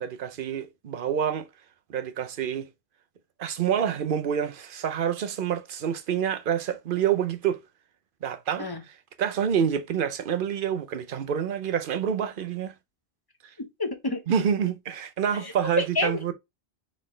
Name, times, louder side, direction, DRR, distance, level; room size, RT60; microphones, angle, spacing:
voice 1, 0.0-1.5 1.9-2.6 3.4-7.6 8.2-12.7 14.3-16.3, right 8 dB, 55° right, 0.8 m, -27 dB
voice 2, 13.6-14.2 15.4-16.3, left 3 dB, 25° left, 0.8 m, -29 dB
4.2 x 3.7 x 3.2 m
omnidirectional pair, 1.2 m